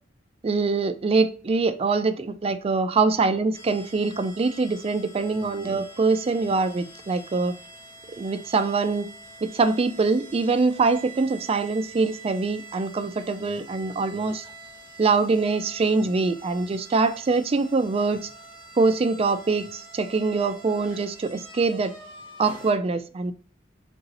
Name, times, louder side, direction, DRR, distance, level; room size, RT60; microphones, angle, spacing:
voice 1, 0.4-7.6 8.1-9.1 9.4-14.5 15.0-18.3 18.8-21.9 22.4-23.3, right 4 dB, 30° right, 0.3 m, -24 dB
sound 1, 3.5-22.7, right 2 dB, 25° left, 1.4 m, -46 dB
3.8 x 2.8 x 4.0 m
head